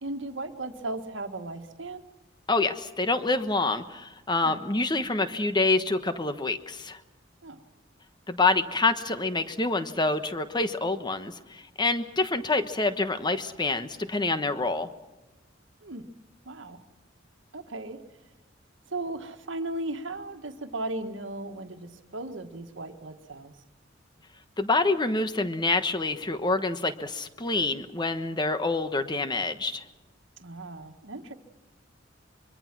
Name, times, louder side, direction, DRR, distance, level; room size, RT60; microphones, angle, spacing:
voice 1, 0.0-2.0 4.4-4.6 7.4-7.6 15.8-16.1 16.4-16.8 17.5-18.0 18.9-23.5 30.4-31.3, right 2 dB, 70° right, 7 dB, 1.6 m, -36 dB
voice 2, 2.5-7.0 8.3-14.9 24.6-29.8, left 3 dB, 25° left, 10 dB, 1.2 m, -27 dB
24.5 x 23.5 x 6.1 m, 1.1 s
head